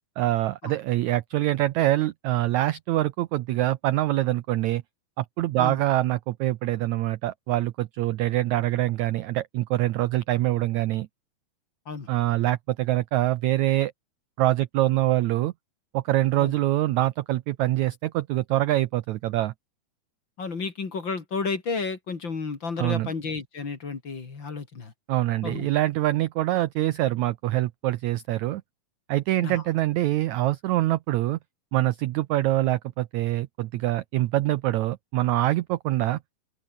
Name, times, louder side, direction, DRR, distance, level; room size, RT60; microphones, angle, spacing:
voice 1, 0.2-4.8 5.2-11.1 12.1-13.9 14.4-15.5 15.9-19.5 22.8-23.1 25.1-28.6 29.1-31.4 31.7-36.2, right 15 dB, 80° right, 1.7 m, -24 dB
voice 2, 20.4-24.9 25.4-25.7 29.4-29.6, left 4 dB, 35° left, 3.0 m, -32 dB
open air
omnidirectional pair, 4.1 m